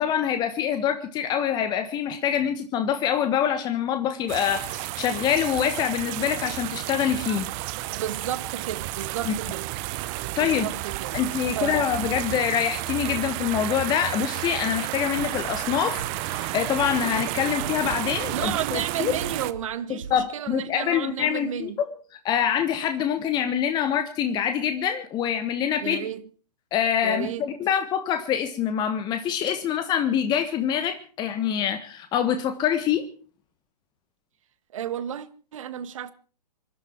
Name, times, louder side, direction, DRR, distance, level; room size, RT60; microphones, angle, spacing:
voice 1, 0.0-7.5 9.2-9.3 10.4-10.7 11.1-19.1 19.9-21.9 22.2-26.0 26.7-33.1, left 9 dB, 20° left, 1.4 m, -25 dB
sound 1, 4.3-19.5, right 18 dB, 30° right, 0.9 m, -32 dB
voice 2, 7.9-9.7 10.4-11.2 11.5-11.9 18.3-21.8 25.8-26.2 27.0-27.5 34.7-36.1, right 10 dB, 50° right, 1.5 m, -32 dB
sound 2, 15.2-15.6 16.0-16.4 16.8-17.2 17.6-18.0 18.4-18.8 19.2-19.6 20.0-20.2, right 5 dB, 65° right, 2.3 m, -39 dB
25.5 x 12.0 x 4.5 m
figure-of-eight pair, 125°, 21 cm